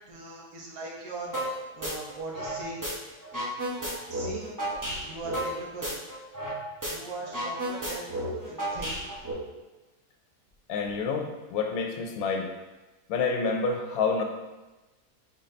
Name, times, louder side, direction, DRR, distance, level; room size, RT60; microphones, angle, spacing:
voice 1, 0.1-2.9 4.1-4.5 5.0-6.0 6.8-9.1, right 2 dB, 70° right, -2 dB, 1.4 m, -40 dB
sound 1, 1.3-1.5 1.8-2.9 3.2-6.6 6.8-6.9 7.2-9.3, right 1 dB, 15° right, 0.7 m, -32 dB
voice 2, 10.7-12.5 13.1-14.2, left 4 dB, 75° left, 4 dB, 1.0 m, -28 dB
4.1 x 4.0 x 3.2 m, 1.1 s
omnidirectional pair, 1.6 m